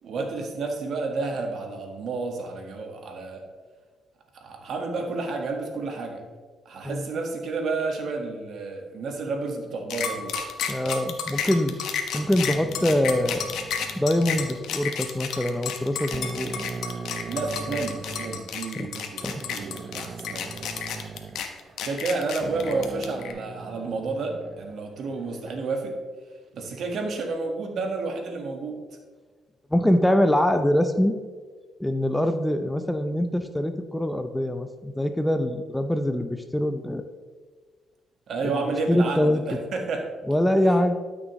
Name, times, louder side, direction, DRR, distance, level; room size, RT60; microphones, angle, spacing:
voice 1, 0.0-3.4 4.3-6.2 6.6-10.3 17.2-20.7 21.8-26.0 26.5-28.8 38.3-40.1, right 3 dB, 65° right, 3 dB, 1.5 m, -30 dB
sound 1, 9.9-23.3, left 7 dB, 80° left, 0.9 m, -31 dB
voice 2, 10.7-11.8 12.1-13.5 13.9-16.5 18.7-18.9 19.2-19.3 29.7-31.1 31.8-37.0 38.4-39.4 40.3-41.0, left 1 dB, 5° left, 8 dB, 0.5 m, -24 dB
sound 2, 12.2-15.0 15.6-15.7 16.1-18.4 19.2-22.1 22.4-24.8, right 5 dB, 45° right, 0.3 m, -39 dB
12.5 x 6.3 x 3.1 m, 1.5 s
cardioid pair, 90°, 0 cm